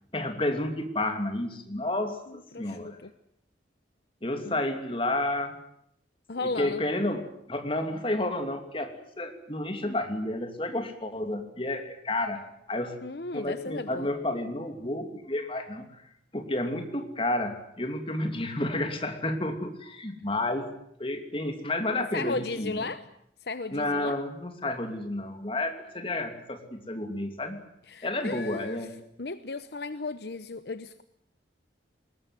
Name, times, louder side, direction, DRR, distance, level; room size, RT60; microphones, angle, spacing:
voice 1, 0.1-3.0 4.2-5.5 6.4-13.0 13.3-15.9 16.3-20.7 21.0-22.9 23.7-27.7 28.0-28.9, left 1 dB, 30° left, 6 dB, 2.7 m, -31 dB
voice 2, 2.3-3.1 4.4-4.6 6.3-6.8 13.0-14.1 22.1-23.0 23.4-24.2 27.9-28.9 29.2-31.0, left 3 dB, 60° left, 12 dB, 0.9 m, -35 dB
21.0 x 19.5 x 9.6 m, 0.74 s
head